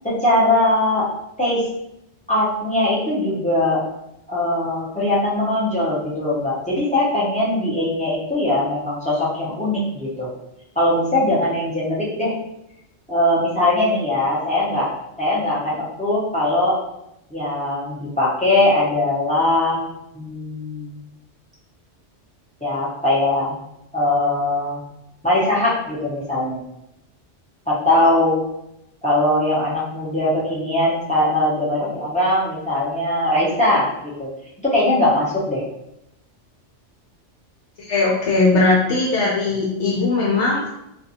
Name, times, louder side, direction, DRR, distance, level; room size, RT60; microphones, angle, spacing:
voice 1, 0.0-1.1 1.4-1.7 2.3-3.8 4.3-10.3 10.8-12.4 13.1-14.9 15.2-16.8 17.3-19.8 20.1-21.0 22.6-23.5 23.9-24.8 25.2-26.6 27.7-28.4 29.0-33.9 34.2-34.3 34.6-35.6, left 1 dB, 10° left, -8 dB, 0.5 m, -20 dB
voice 2, 37.9-40.7, left 3 dB, 75° left, -4 dB, 0.9 m, -19 dB
2.5 x 2.3 x 2.7 m, 0.84 s
omnidirectional pair, 1.3 m